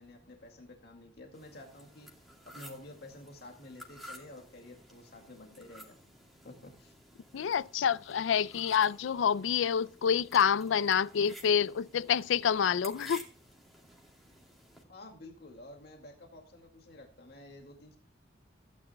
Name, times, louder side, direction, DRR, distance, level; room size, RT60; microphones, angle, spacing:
voice 1, 0.0-2.1 2.5-6.0 6.4-6.9 14.9-18.0, left 1 dB, 55° left, 2.2 m, -50 dB
sound 1, 1.3-14.8, equal, ahead, 2.5 m, -53 dB
voice 2, 7.3-13.2, left 7 dB, 80° left, 0.4 m, -27 dB
16.0 x 9.9 x 2.2 m
head